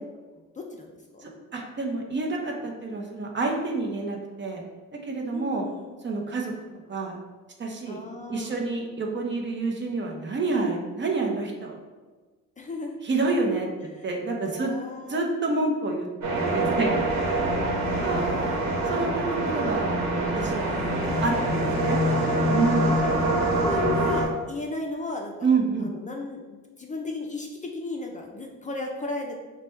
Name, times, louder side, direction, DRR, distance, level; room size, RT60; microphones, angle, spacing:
voice 1, 0.7-1.3 5.3-6.0 7.9-8.5 12.6-13.0 13.9-14.1 14.5-15.3 17.8-18.6 20.7-22.6 23.1-25.5 25.8-29.4, left 3 dB, 25° left, 0 dB, 0.5 m, -36 dB
voice 2, 1.5-4.6 5.1-5.6 6.0-6.5 6.9-7.2 7.6-8.0 8.3-11.8 13.0-13.7 14.0-14.7 15.1-17.1 18.0-18.2 18.9-20.8 21.2-22.0 22.5-23.0 25.4-25.9, right 3 dB, 40° right, 1 dB, 0.7 m, -28 dB
sound 1, 16.2-24.2, right 1 dB, 65° right, 1.1 m, -25 dB
3.2 x 2.2 x 4.3 m, 1.3 s
cardioid pair, 90°, 30 cm